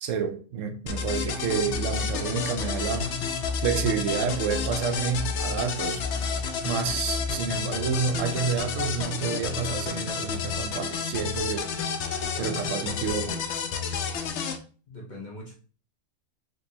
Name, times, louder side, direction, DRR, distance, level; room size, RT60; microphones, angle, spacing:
voice 1, 0.0-3.1 3.6-6.0 6.6-11.7 12.4-13.4, right 7 dB, 75° right, 0.9 m, -29 dB
sound 1, 0.9-14.6, left 5 dB, 65° left, 0.8 m, -30 dB
voice 2, 12.3-13.0 14.9-15.5, left 1 dB, 35° left, 1.1 m, -42 dB
5.1 x 3.0 x 2.7 m
omnidirectional pair, 1.4 m